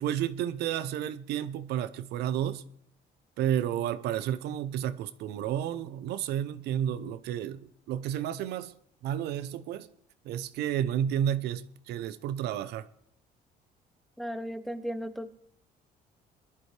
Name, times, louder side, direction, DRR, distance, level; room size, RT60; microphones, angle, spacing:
voice 1, 0.0-2.6 3.4-8.7 9.0-9.9 10.3-12.9, right 10 dB, 75° right, 0.7 m, -31 dB
voice 2, 14.2-15.3, equal, ahead, 0.9 m, -35 dB
21.5 x 11.0 x 3.3 m
cardioid pair, 110°, 17 cm